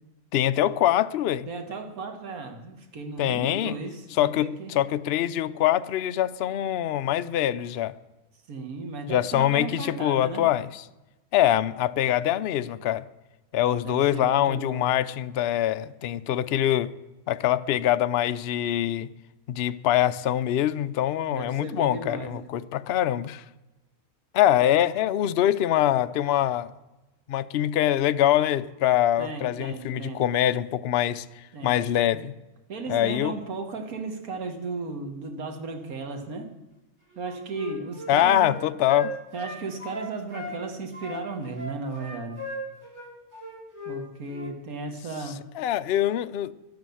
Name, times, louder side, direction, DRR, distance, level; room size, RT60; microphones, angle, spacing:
voice 1, 0.3-1.5 3.2-3.8 4.2-7.9 9.1-10.8 11.3-13.1 13.5-16.9 17.3-19.1 19.5-23.4 24.3-26.7 27.3-31.2 31.6-32.3 32.9-33.3 38.1-39.1 45.6-46.5, left 12 dB, 60° left, 0.7 m, -24 dB
voice 2, 1.5-4.7 8.5-10.5 13.5-15.0 21.3-22.5 29.2-30.2 31.5-31.7 32.7-36.5 37.2-38.5 39.3-42.4 43.9-45.4, right 3 dB, 85° right, 2.0 m, -35 dB
Wind instrument woodwind instrument, 37.1-40.6 40.9-44.0 44.3-44.5, left 1 dB, 50° right, 4.6 m, -37 dB
12.0 x 10.5 x 7.0 m
omnidirectional pair, 1.5 m